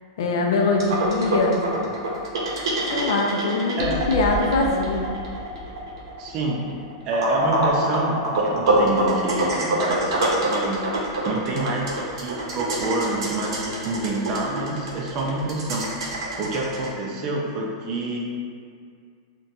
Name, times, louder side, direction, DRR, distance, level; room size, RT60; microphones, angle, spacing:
voice 1, 0.2-2.1 2.9-5.0, left 3 dB, 70° left, 1 dB, 0.4 m, -23 dB
sound 1, 0.8-16.9, right 2 dB, 75° right, 0.7 m, -25 dB
voice 2, 6.2-6.6 7.0-10.1 10.4-10.8 11.2-15.9 16.4-18.2, right 2 dB, 30° right, -2 dB, 0.4 m, -27 dB
3.8 x 2.2 x 2.6 m, 2.2 s
supercardioid pair, 165°, 3 cm